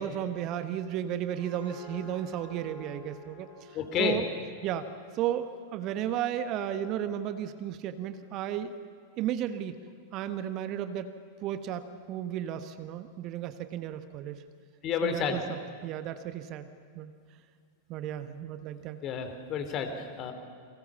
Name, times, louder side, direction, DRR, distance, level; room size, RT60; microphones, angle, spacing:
voice 1, 0.0-4.3 4.6-4.9 5.1-8.7 9.2-9.8 10.1-11.1 11.4-14.4 15.0-16.7 16.9-17.1 17.9-19.0, right 10 dB, 40° right, 10 dB, 1.2 m, -34 dB
sound 1, 1.1-6.3, left 2 dB, 80° left, 7.5 m, -50 dB
voice 2, 3.7-4.2 14.8-15.4 19.0-20.3, left 7 dB, 35° left, 7 dB, 3.4 m, -30 dB
29.0 x 23.5 x 7.2 m, 2.1 s
figure-of-eight pair, 90°, 0 cm